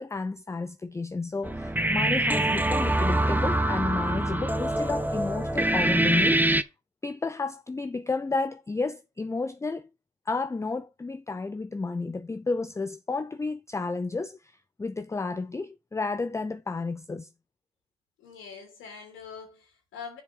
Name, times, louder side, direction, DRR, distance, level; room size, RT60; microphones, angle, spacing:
voice 1, 0.0-6.7 7.0-9.9 10.3-17.3, left 3 dB, 15° left, 0.4 m, -32 dB
sound 1, 1.4-6.6, right 1 dB, 10° right, 0.8 m, -24 dB
voice 2, 18.2-20.2, left 6 dB, 90° left, 2.9 m, -43 dB
7.0 x 5.0 x 6.6 m
supercardioid pair, 60°, 20 cm